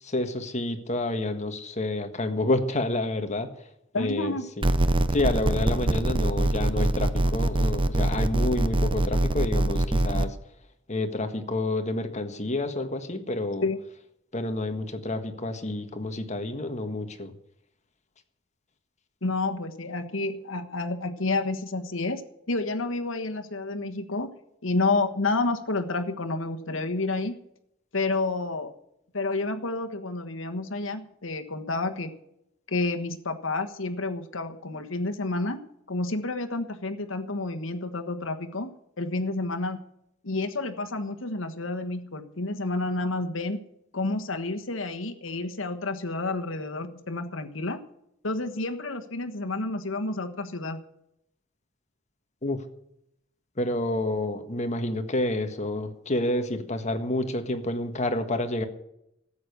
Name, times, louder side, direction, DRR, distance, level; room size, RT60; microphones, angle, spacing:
voice 1, 0.0-3.5 3.9-4.7 5.1-10.4 10.9-13.7 14.3-17.3 52.4-52.6 53.6-58.6, left 2 dB, 35° left, 8 dB, 1.5 m, -29 dB
voice 2, 3.9-4.4 13.6-13.8 19.2-24.3 24.6-27.4 27.9-28.7 29.1-32.1 32.7-39.8 40.2-43.6 43.9-47.8 48.2-50.8, left 2 dB, 80° left, 6 dB, 1.4 m, -30 dB
sound 1, 4.6-10.3, right 1 dB, 25° right, 0.7 m, -24 dB
14.0 x 8.7 x 8.1 m, 0.78 s
head